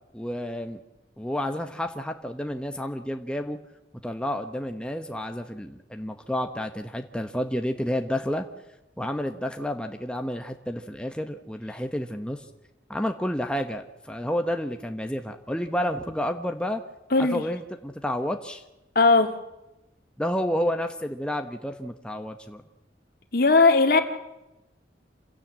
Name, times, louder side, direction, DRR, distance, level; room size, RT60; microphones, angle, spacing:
voice 1, 0.1-0.8 1.2-3.6 4.0-8.4 9.0-12.4 12.9-16.8 17.3-18.6 20.2-22.6, equal, 5° left, 5 dB, 1.0 m, -30 dB
voice 2, 17.1-17.4 19.0-19.3 23.3-24.0, left 3 dB, 55° left, 7 dB, 1.9 m, -18 dB
27.5 x 16.5 x 7.6 m, 0.97 s
head